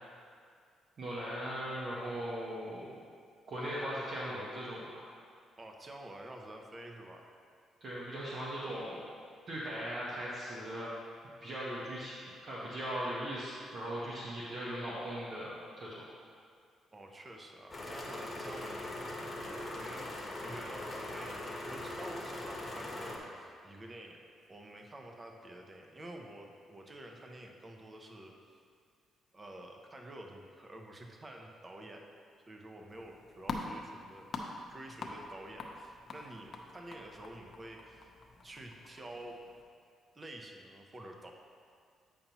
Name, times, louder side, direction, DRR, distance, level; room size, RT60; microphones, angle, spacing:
voice 1, 1.0-2.9 3.5-5.0 7.8-9.0 9.5-10.9 11.4-12.2 12.5-16.0, equal, 55° right, -7 dB, 1.1 m, -39 dB
voice 2, 5.6-7.3 16.9-28.3 29.3-32.1 32.5-34.3 34.7-38.1 38.4-39.4 40.1-41.3, right 1 dB, 25° right, 2 dB, 0.7 m, -49 dB
sound 1, 17.7-23.2, left 1 dB, 20° left, 1.2 m, -41 dB
sound 2, 32.9-39.6, left 3 dB, 50° left, 0.7 m, -45 dB
8.5 x 5.4 x 3.0 m, 2.2 s
cardioid pair, 90°, 0 cm